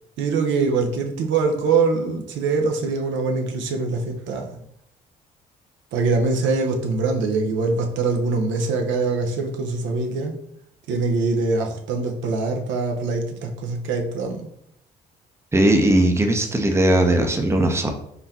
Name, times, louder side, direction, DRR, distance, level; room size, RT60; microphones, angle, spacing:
voice 1, 0.2-4.5 5.9-10.3 10.9-14.5, right 4 dB, 65° right, 3 dB, 0.7 m, -23 dB
voice 2, 15.5-17.9, right 1 dB, 15° right, 4 dB, 0.7 m, -18 dB
3.8 x 3.4 x 2.8 m, 0.72 s
hypercardioid pair, 50°, 21 cm